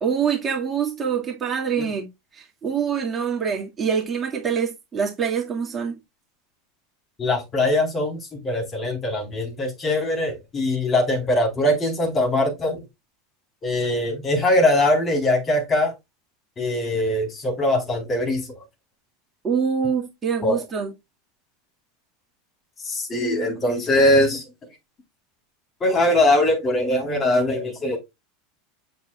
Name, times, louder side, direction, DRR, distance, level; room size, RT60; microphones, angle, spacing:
voice 1, 0.0-2.1 2.3-6.0 19.4-20.9, right 7 dB, 25° right, 2.0 m, -25 dB
voice 2, 7.2-12.9 13.6-15.9 16.6-18.6 20.4-20.6 22.8-24.4 25.8-28.0, left 1 dB, 30° left, 4.0 m, -21 dB
7.4 x 6.8 x 2.4 m
hypercardioid pair, 85°, 0 cm